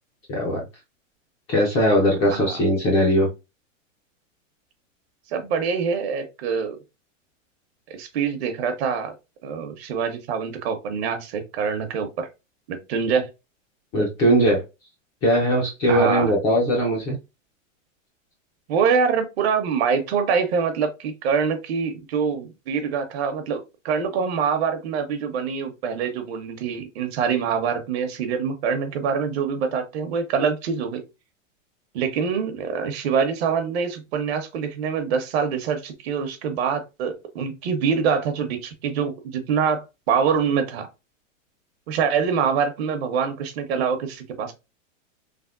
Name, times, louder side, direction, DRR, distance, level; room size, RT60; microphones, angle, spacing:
voice 1, 0.3-0.6 1.5-3.3 13.9-14.6 15.2-17.2, equal, 15° left, 0.3 m, -20 dB
voice 2, 2.2-2.6 5.3-6.8 7.9-9.1 9.4-12.3 12.7-13.3 15.9-16.3 18.7-31.0 31.9-40.9 41.9-44.5, right 6 dB, 55° right, 0.8 m, -25 dB
3.4 x 2.0 x 2.3 m
supercardioid pair, 145°, 39 cm